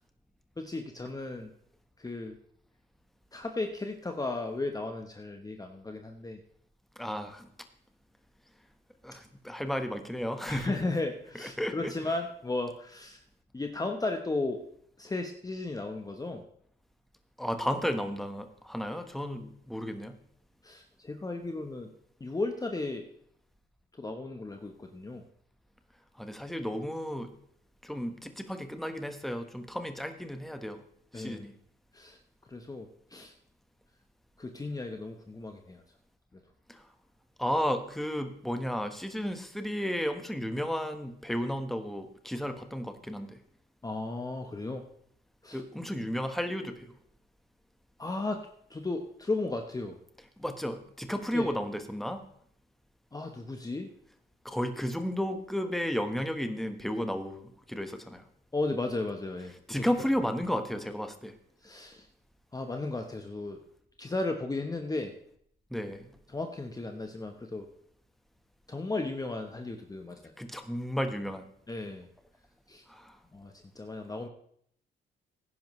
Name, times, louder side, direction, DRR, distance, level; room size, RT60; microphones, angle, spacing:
voice 1, 0.6-1.5 2.0-2.4 3.3-6.4 10.5-13.2 13.5-14.6 15.0-16.4 20.6-21.9 22.2-23.0 24.0-25.3 31.1-31.5 31.9-32.2 32.5-33.3 34.4-35.8 43.8-44.8 45.4-45.6 48.0-48.4 48.7-50.0 51.3-51.5 53.1-53.9 58.5-59.5 61.6-62.1 62.5-63.6 64.0-65.1 66.3-67.7 68.7-70.3 71.7-72.1 72.7-72.8 73.3-74.3, left 2 dB, 20° left, 4 dB, 1.1 m, -35 dB
voice 2, 7.0-7.5 9.0-10.8 11.3-11.9 17.4-20.2 26.1-27.3 27.8-30.8 31.1-31.5 36.7-36.8 37.4-43.4 45.5-46.9 50.4-52.2 54.4-58.2 59.7-61.3 65.7-66.1 70.4-71.4 72.9-73.2, equal, ahead, 7 dB, 1.3 m, -33 dB
16.5 x 10.5 x 3.2 m, 0.67 s
cardioid pair, 90°, 20 cm